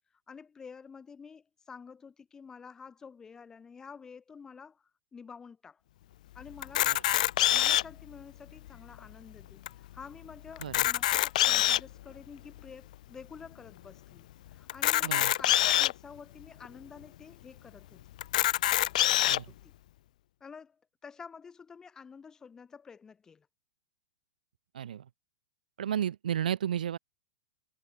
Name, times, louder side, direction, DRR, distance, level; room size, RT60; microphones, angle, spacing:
voice 1, 0.3-5.8 6.3-7.0 7.5-18.0 19.5-19.7 20.4-23.5, left 6 dB, 15° left, 5.6 m, -49 dB
Camera, 6.6-8.0 8.7-8.8 9.0-9.1 9.7-9.8 10.6-11.9 12.6-12.7 14.7-15.9 16.6-16.7 17.0-17.1 18.2-19.4, left 14 dB, 60° left, 0.8 m, -25 dB
voice 2, 15.0-15.3 19.2-19.5 24.7-25.0 25.8-27.0, right 9 dB, 85° right, 1.0 m, -33 dB
hypercardioid pair, 150°, 5 cm